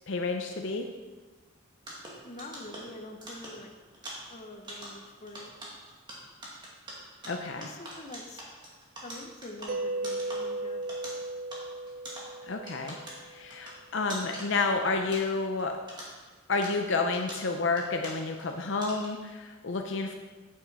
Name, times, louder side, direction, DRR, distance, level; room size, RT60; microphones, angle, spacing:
voice 1, 0.1-0.9 7.3-7.7 12.4-13.0 13.3-15.8 16.5-20.1, left 3 dB, 60° left, 4 dB, 0.6 m, -30 dB
sound 1, 1.8-15.6 15.9-18.5 18.8-19.3, right 1 dB, 20° right, 2.0 m, -45 dB
voice 2, 2.2-3.7 4.3-5.5 7.6-8.4 9.0-10.8, left 1 dB, 35° left, 3 dB, 0.9 m, -45 dB
Mallet percussion, 9.7-13.4, right 2 dB, 40° right, 0.3 m, -36 dB
8.9 x 8.5 x 4.1 m, 1.3 s
head